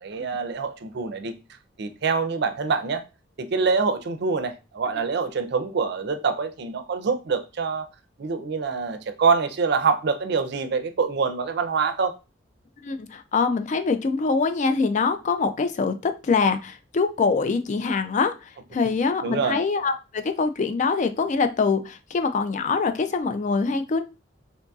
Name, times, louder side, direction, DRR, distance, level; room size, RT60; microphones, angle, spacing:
voice 1, 0.0-1.3 1.8-3.0 3.4-7.9 8.2-12.1 19.2-19.6, right 5 dB, 65° right, 0.4 m, -25 dB
voice 2, 12.8-24.0, left 4 dB, 40° left, 0.3 m, -24 dB
3.7 x 2.6 x 2.3 m
head